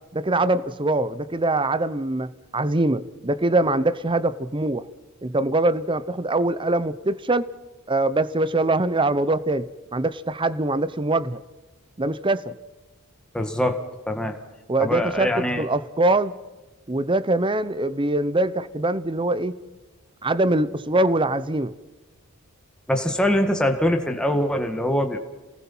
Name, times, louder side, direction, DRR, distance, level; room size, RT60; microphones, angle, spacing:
voice 1, 0.1-4.9 5.2-7.5 7.9-11.4 12.0-12.5 14.7-15.3 15.6-16.3 16.9-19.6 20.2-21.7, right 2 dB, 25° right, 0.8 m, -23 dB
voice 2, 13.3-14.4 14.8-15.6 22.9-25.2, left 1 dB, 5° left, 1.7 m, -23 dB
28.5 x 19.5 x 5.7 m
head